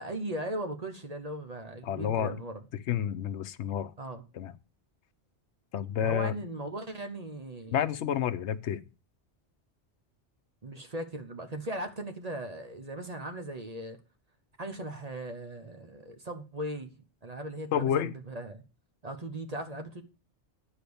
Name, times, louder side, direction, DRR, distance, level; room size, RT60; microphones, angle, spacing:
voice 1, 0.0-2.6 4.0-4.2 6.0-7.9 10.6-14.0 14.6-16.9 17.2-18.6 19.0-20.0, right 1 dB, 35° right, 1.0 m, -38 dB
voice 2, 1.8-2.3 2.9-3.9 4.3-4.5 5.7-6.3 7.7-8.8 17.7-18.1, left 9 dB, 75° left, 1.0 m, -29 dB
10.0 x 4.9 x 6.9 m
omnidirectional pair, 1.2 m